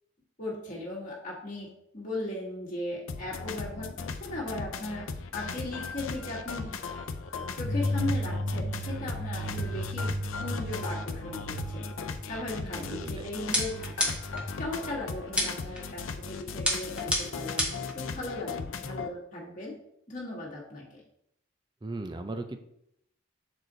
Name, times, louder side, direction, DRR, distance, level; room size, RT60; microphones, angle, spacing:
voice 1, 0.4-1.7 1.9-6.7 7.6-11.8 12.2-14.1 14.6-19.7 20.1-21.0, left 2 dB, 40° left, -5 dB, 1.5 m, -37 dB
sound 1, 3.1-19.1, left 5 dB, 85° left, 0.6 m, -38 dB
sound 2, 7.6-14.4, equal, 55° left, 1.0 m, -34 dB
voice 2, 12.7-13.3 21.8-22.6, right 2 dB, 20° right, 7 dB, 0.5 m, -37 dB
sound 3, 13.5-14.4 15.4-15.8 16.6-17.9, equal, 5° right, 1.1 m, -29 dB
6.4 x 4.3 x 3.9 m, 0.77 s
head